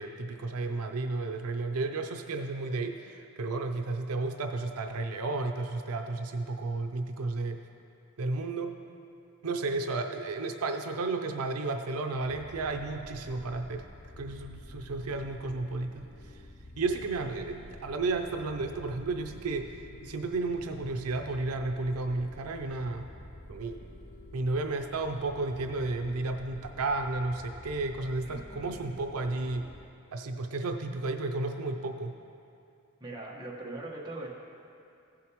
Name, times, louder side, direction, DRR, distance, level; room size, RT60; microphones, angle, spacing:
voice 1, 0.0-7.6 8.2-8.8 9.4-13.8 14.2-16.1 16.8-19.7 20.0-23.1 23.5-23.9 24.3-29.7 30.1-32.1, right 3 dB, 85° right, 5 dB, 0.6 m, -32 dB
sound 1, 12.1-29.9, left 1 dB, 35° left, 0.7 m, -49 dB
voice 2, 28.2-29.0 33.0-34.3, right 2 dB, 20° right, -4 dB, 1.3 m, -41 dB
16.0 x 7.4 x 3.0 m, 2.6 s
head